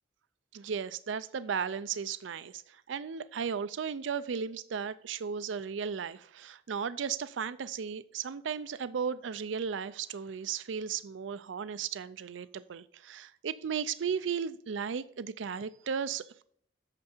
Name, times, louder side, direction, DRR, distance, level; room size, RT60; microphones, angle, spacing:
voice 1, 0.5-16.4, right 6 dB, 80° right, 0.4 m, -35 dB
8.8 x 6.6 x 4.4 m
head